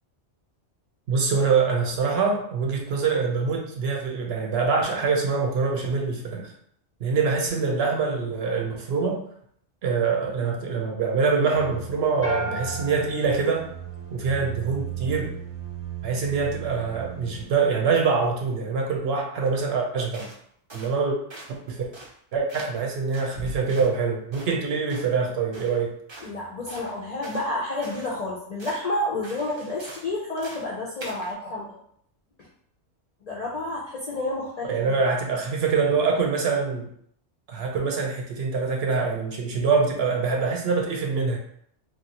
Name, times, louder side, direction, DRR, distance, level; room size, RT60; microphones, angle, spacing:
voice 1, 1.1-6.5 7.0-9.2 9.8-13.7 14.1-15.3 16.0-20.3 20.7-21.2 21.5-21.9 22.3-25.9 34.7-36.9 37.5-41.4, right 5 dB, 65° right, 1 dB, 0.8 m, -24 dB
sound 1, 11.5-17.5, right 10 dB, 85° right, 1.0 m, -37 dB
sound 2, 12.2-14.5, left 1 dB, 15° left, 0.8 m, -34 dB
sound 3, 20.1-20.4 20.7-21.0 21.3-21.6 21.9-22.2 22.5-22.9 23.1-24.0 24.3-24.5 24.9-25.1 25.5-25.8 26.1-26.3 26.7-27.5 27.8-28.1 28.6-28.9 29.2-30.1 30.4-30.7 31.0-31.3, right 2 dB, 40° right, 0.4 m, -43 dB
voice 2, 26.2-31.7 33.2-35.0, left 2 dB, 55° left, -4 dB, 0.4 m, -30 dB
3.1 x 2.4 x 2.8 m, 0.66 s
omnidirectional pair, 1.2 m